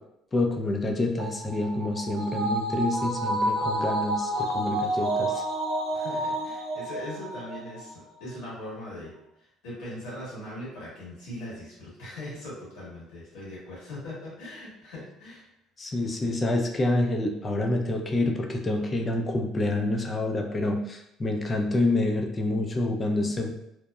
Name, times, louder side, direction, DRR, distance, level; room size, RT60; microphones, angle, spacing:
voice 1, 0.3-5.4 15.8-23.5, left 2 dB, 30° left, 2 dB, 0.4 m, -27 dB
sound 1, 1.2-7.8 8.2-8.3, right 1 dB, 90° right, 0.7 m, -29 dB
voice 2, 5.9-15.5, left 1 dB, 85° left, -7 dB, 1.5 m, -40 dB
2.9 x 2.1 x 2.3 m, 0.82 s
cardioid pair, 100°, 0 cm